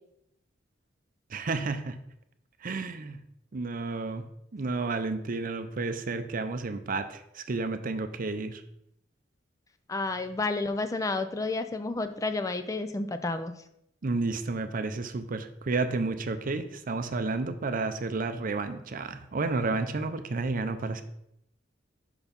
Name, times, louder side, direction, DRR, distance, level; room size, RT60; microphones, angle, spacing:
voice 1, 1.3-2.0 2.6-3.2 3.5-4.2 4.5-8.6 14.0-21.0, right 3 dB, 45° right, 9 dB, 0.5 m, -31 dB
voice 2, 9.9-13.5, left 3 dB, 20° left, 9 dB, 0.3 m, -30 dB
5.8 x 4.4 x 5.2 m, 0.76 s
head